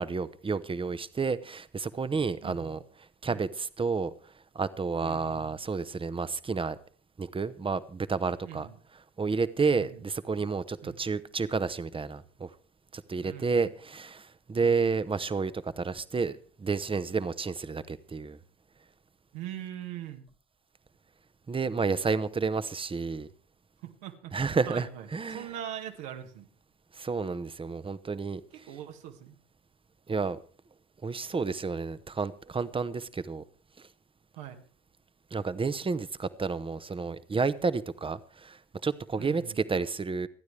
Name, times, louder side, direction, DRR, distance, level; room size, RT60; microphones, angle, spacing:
voice 1, 0.0-2.8 3.2-4.1 4.5-6.8 7.2-8.7 9.2-12.5 12.9-18.4 21.5-23.3 24.3-25.5 26.9-28.4 30.1-30.4 31.0-33.4 35.3-40.3, right 4 dB, 15° right, 0.8 m, -30 dB
voice 2, 2.4-2.8 3.3-3.5 5.0-5.6 8.4-8.8 9.6-10.0 10.8-11.0 13.2-13.7 19.3-20.3 23.8-26.5 28.6-29.4 34.3-34.6 39.2-39.6, right 11 dB, 80° right, 1.9 m, -42 dB
26.5 x 9.5 x 3.4 m
supercardioid pair, 85°, 33 cm